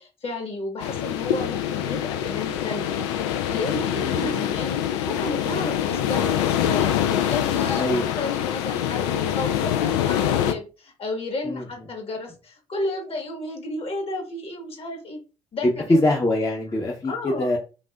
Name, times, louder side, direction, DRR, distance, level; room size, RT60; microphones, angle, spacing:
voice 1, 0.0-15.2 15.5-16.1 17.1-17.5, left 2 dB, 40° left, 3 dB, 1.5 m, -32 dB
sound 1, 0.8-10.5, left 10 dB, 70° left, 0.5 m, -25 dB
voice 2, 4.0-4.3 7.8-8.1 11.4-11.6 15.6-17.6, left 1 dB, 20° left, -1 dB, 0.9 m, -23 dB
5.3 x 2.6 x 2.4 m, 0.32 s
figure-of-eight pair, 50°, 15 cm